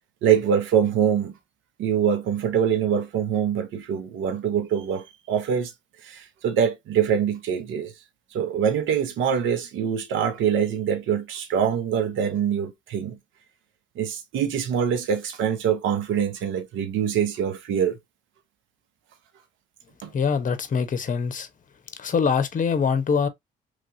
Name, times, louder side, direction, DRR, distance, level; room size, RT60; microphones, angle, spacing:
voice 1, 0.2-1.3 1.8-5.7 6.0-7.9 8.3-13.2 14.0-18.0 20.0-20.1, right 8 dB, 75° right, 0.9 m, -24 dB
voice 2, 20.1-21.5 22.0-23.3, left 6 dB, 40° left, 0.9 m, -23 dB
3.1 x 2.9 x 2.6 m
supercardioid pair, 65°, 20 cm